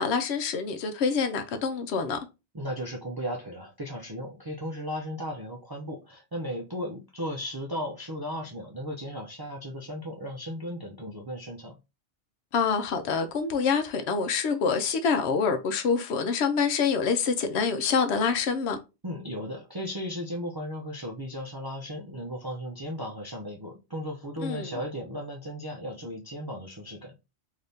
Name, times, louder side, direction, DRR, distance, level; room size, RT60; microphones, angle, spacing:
voice 1, 0.0-2.2 12.5-18.8 24.4-24.7, left 5 dB, 75° left, 0.8 m, -26 dB
voice 2, 2.5-11.8 19.0-27.1, equal, 35° right, 0.3 m, -36 dB
3.4 x 2.8 x 2.6 m
omnidirectional pair, 1.2 m